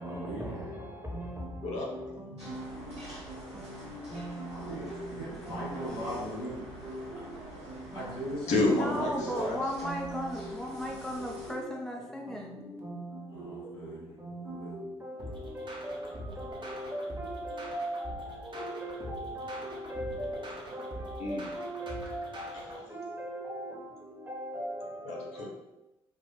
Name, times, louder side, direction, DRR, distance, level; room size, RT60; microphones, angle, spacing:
voice 1, 0.0-0.5 4.5-6.6 7.1-7.2 7.9-9.6 13.3-14.7, equal, 90° left, 1.5 m, -39 dB
voice 2, 1.6-2.0 8.5-9.7 21.2-21.5 22.5-22.9 25.0-25.5, left 2 dB, 55° left, 0.9 m, -31 dB
sound 1, 2.4-11.5, right 1 dB, 90° right, 1.2 m, -47 dB
voice 3, 8.8-12.6, equal, 5° left, 0.7 m, -35 dB
sound 2, 15.2-22.8, equal, 35° right, 1.2 m, -44 dB
voice 4, 17.4-17.8 18.6-18.9 19.9-20.3 21.6-22.0 23.0-23.5, right 1 dB, 15° right, 1.3 m, -37 dB
4.1 x 2.5 x 3.8 m
figure-of-eight pair, 45°, 14 cm